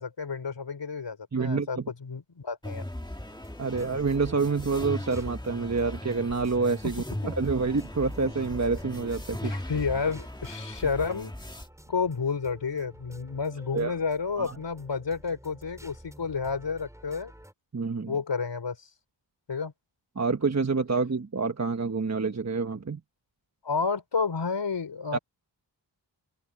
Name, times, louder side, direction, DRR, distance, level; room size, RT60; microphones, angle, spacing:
voice 1, 0.0-2.9 6.8-6.9 9.4-11.3 11.9-17.3 18.1-18.9 19.5-19.7 23.6-25.2, left 5 dB, 70° left, 3.8 m, -30 dB
voice 2, 1.3-1.9 3.6-9.6 13.7-14.0 14.4-14.6 17.7-18.2 20.2-23.0 25.1-25.2, right 4 dB, 35° right, 1.3 m, -28 dB
sound 1, 2.6-11.7, left 1 dB, 10° left, 1.8 m, -38 dB
sound 2, 3.2-17.5, equal, 5° right, 7.8 m, -51 dB
open air
wide cardioid pair, 90°, 45 cm